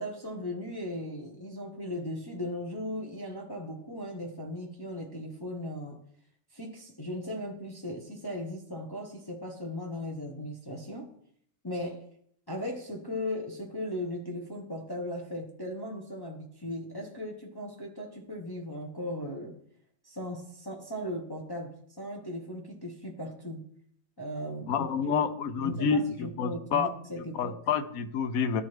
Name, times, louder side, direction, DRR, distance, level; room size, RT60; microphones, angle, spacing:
voice 1, 0.0-6.0 6.5-11.1 11.6-12.1 12.5-19.6 20.0-23.6 24.2-24.9 25.6-27.5, left 1 dB, 20° left, 0 dB, 0.8 m, -37 dB
voice 2, 24.7-26.9 27.3-28.6, left 6 dB, 75° left, 10 dB, 1.0 m, -28 dB
13.0 x 4.5 x 3.2 m, 0.65 s
omnidirectional pair, 1.6 m